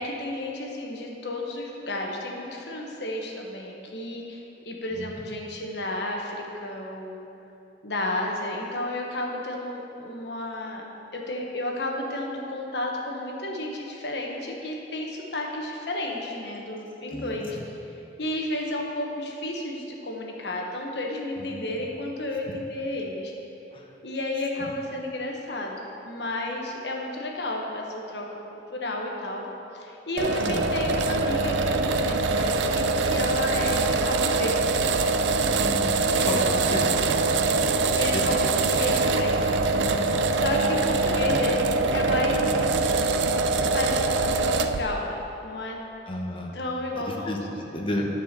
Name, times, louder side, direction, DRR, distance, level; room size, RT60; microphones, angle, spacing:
voice 1, 0.0-7.2 7.8-10.8 11.1-17.8 18.2-23.3 24.0-28.2 28.5-29.5 29.7-34.7 36.1-37.0 37.9-39.4 40.3-42.8 43.7-45.8 46.5-47.4, left 1 dB, 70° left, 0 dB, 1.2 m, -32 dB
voice 2, 4.9-5.3 17.1-17.3 21.4-21.6 23.7-23.8 30.5-30.6 35.5-36.0 36.2-36.4 36.7-37.2 38.1-38.3 39.8-40.2 46.1-46.5 47.0-48.1, left 1 dB, 30° left, 0 dB, 0.9 m, -32 dB
sound 1, 30.2-44.8, right 3 dB, 85° right, 0.4 m, -23 dB
10.0 x 4.8 x 6.7 m, 2.9 s
head